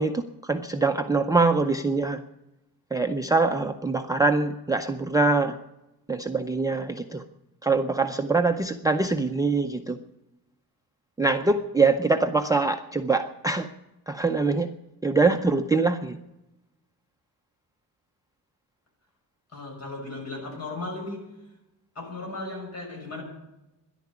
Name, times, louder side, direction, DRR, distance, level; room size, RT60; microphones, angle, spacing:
voice 1, 0.0-2.2 2.9-5.6 6.1-7.2 7.6-10.0 11.2-13.7 14.1-14.7 15.0-16.2, right 3 dB, 10° right, 4 dB, 0.5 m, -24 dB
voice 2, 19.5-21.3 21.9-23.2, left 2 dB, 40° left, 0 dB, 6.4 m, -36 dB
13.0 x 11.0 x 9.5 m, 0.94 s
wide cardioid pair, 170°, 37 cm